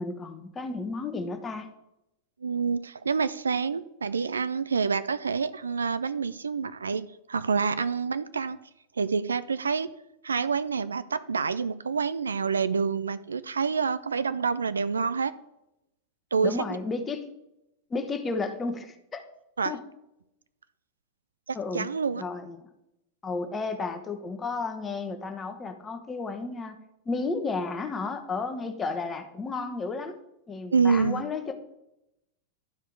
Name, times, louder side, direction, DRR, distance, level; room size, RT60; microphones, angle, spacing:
voice 1, 0.0-1.7 16.4-17.2 17.9-19.2 19.6-19.8 21.5-21.9 22.2-22.7 23.2-26.8 27.1-30.2 30.5-31.6, left 3 dB, 20° left, 6 dB, 1.1 m, -32 dB
voice 2, 2.4-8.6 9.0-9.9 10.2-15.3 16.3-16.6 19.6-19.7 21.5-22.2 30.7-31.2, right 5 dB, 75° right, 15 dB, 0.4 m, -27 dB
12.0 x 4.8 x 4.6 m, 0.86 s
figure-of-eight pair, 90°, 0 cm